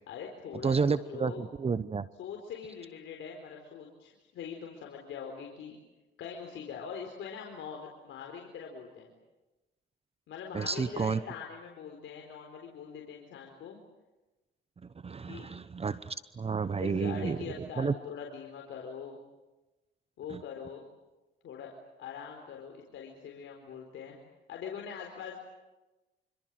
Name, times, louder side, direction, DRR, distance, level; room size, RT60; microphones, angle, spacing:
voice 1, 0.1-1.5 2.2-5.8 6.2-9.1 10.3-13.8 15.3-15.5 16.8-19.2 20.2-20.8 21.4-21.7 22.0-24.2 24.5-25.4, left 7 dB, 75° left, 1 dB, 4.3 m, -42 dB
voice 2, 0.6-2.1 10.5-11.2 15.0-17.4 17.8-17.9 20.3-20.4, right 5 dB, 30° right, 15 dB, 0.9 m, -30 dB
27.0 x 26.5 x 7.6 m, 1.1 s
cardioid pair, 90°, 20 cm